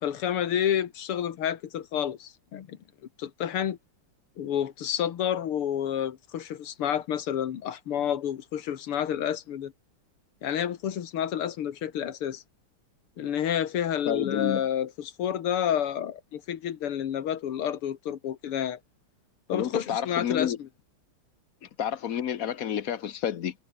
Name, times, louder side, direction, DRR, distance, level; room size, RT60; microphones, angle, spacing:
voice 1, 0.0-2.8 3.2-3.8 4.4-9.7 10.4-12.4 13.2-18.8 19.5-20.7, left 9 dB, 85° left, 2.4 m, -29 dB
voice 2, 14.1-14.6 19.5-20.6 21.8-23.5, left 9 dB, 55° left, 1.0 m, -29 dB
omnidirectional pair, 2.4 m